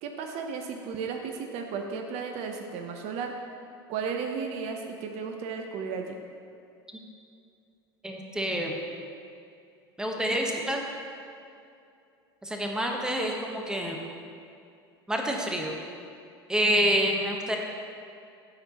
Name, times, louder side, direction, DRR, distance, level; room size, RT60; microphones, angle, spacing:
voice 1, 0.0-3.4 3.9-6.2 16.6-16.9, right 5 dB, 55° right, 4 dB, 0.7 m, -34 dB
voice 2, 8.0-8.8 10.0-10.8 12.4-14.0 15.1-15.7 16.5-17.6, equal, 5° right, 1 dB, 0.9 m, -27 dB
12.5 x 4.4 x 2.8 m, 2.5 s
hypercardioid pair, 80°, 13 cm